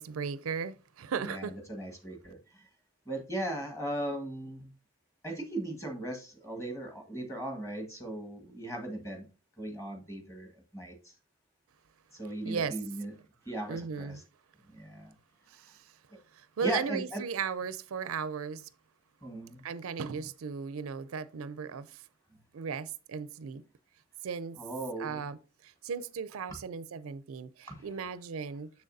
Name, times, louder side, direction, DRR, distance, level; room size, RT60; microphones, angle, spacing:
voice 1, 0.0-1.5 12.4-12.7 13.7-14.2 15.5-15.8 16.3-18.6 19.6-22.0 22.5-23.6 24.2-24.6 25.0-25.4 25.6-28.7, right 6 dB, 70° right, 0.4 m, -36 dB
voice 2, 1.2-2.7 3.0-4.7 5.2-9.3 9.6-11.1 12.1-13.1 13.4-14.2 14.7-15.1 16.6-17.2 19.2-19.6 24.6-25.2 26.5-26.6 27.6-28.0, right 1 dB, 15° left, 1.6 m, -38 dB
7.0 x 6.3 x 2.6 m
head